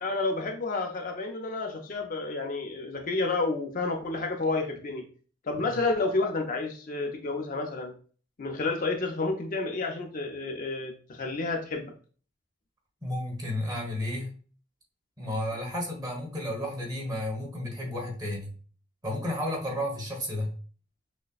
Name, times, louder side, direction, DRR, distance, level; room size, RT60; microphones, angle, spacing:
voice 1, 0.0-5.0 5.4-7.9 8.4-11.9, left 3 dB, 50° left, 3 dB, 0.5 m, -30 dB
voice 2, 13.0-14.3 15.2-18.5 19.0-20.5, left 1 dB, 20° right, 0 dB, 1.3 m, -32 dB
6.2 x 2.2 x 2.4 m, 0.40 s
head